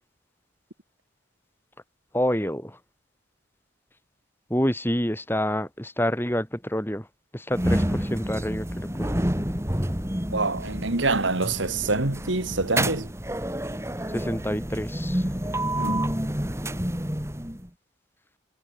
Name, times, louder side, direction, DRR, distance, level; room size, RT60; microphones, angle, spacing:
voice 1, 2.1-2.8 4.5-7.1 7.3-9.1 14.1-15.2, equal, 10° left, 6.5 m, -27 dB
sound 1, 7.5-17.7, right 1 dB, 15° right, 2.6 m, -29 dB
voice 2, 10.3-13.1 15.8-16.1, right 3 dB, 70° right, 2.4 m, -26 dB
head